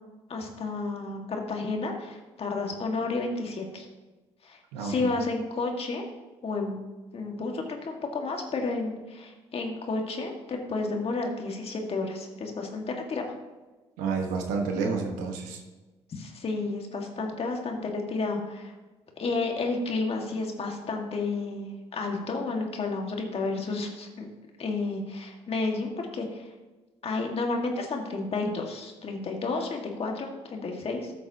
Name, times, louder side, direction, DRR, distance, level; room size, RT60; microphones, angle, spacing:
voice 1, 0.3-3.9 4.4-6.0 6.4-6.8 7.1-13.3 16.1-18.7 19.2-24.3 24.6-26.5 27.0-31.1, left 3 dB, 50° left, 2 dB, 1.9 m, -31 dB
voice 2, 4.7-5.1 14.0-15.6, right 5 dB, 85° right, 3 dB, 1.3 m, -30 dB
13.5 x 7.1 x 2.9 m, 1.2 s
supercardioid pair, 60°, 13 cm